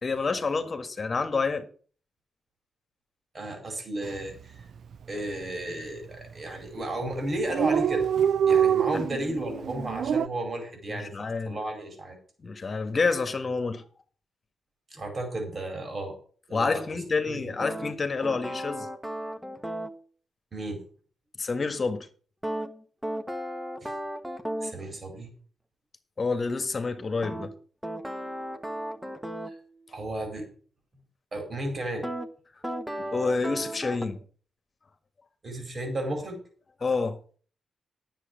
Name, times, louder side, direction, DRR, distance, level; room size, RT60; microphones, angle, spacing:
voice 1, 0.0-1.7 10.9-11.6 12.4-13.8 16.5-18.9 21.4-22.1 26.2-27.5 33.0-34.2 36.8-37.2, left 4 dB, 45° left, 1.6 m, -28 dB
voice 2, 3.3-4.6 5.1-8.1 8.5-11.1 11.4-12.2 14.9-16.2 16.5-17.5 20.5-20.8 23.8-23.9 24.6-25.3 29.5-29.6 29.9-30.5 31.3-32.1 35.4-36.4, right 1 dB, 45° right, 4.8 m, -33 dB
Dog, 4.0-4.3 4.6-4.7 4.9-5.6 6.2-6.5 6.8-6.9 7.1-7.2 7.3-10.3, right 8 dB, 70° right, 0.4 m, -25 dB
sound 1, 17.6-20.0 22.4-24.8 27.2-29.6 32.0-32.3 32.6-34.1, right 1 dB, 5° right, 1.4 m, -35 dB
10.0 x 7.7 x 6.4 m
supercardioid pair, 60°, 0 cm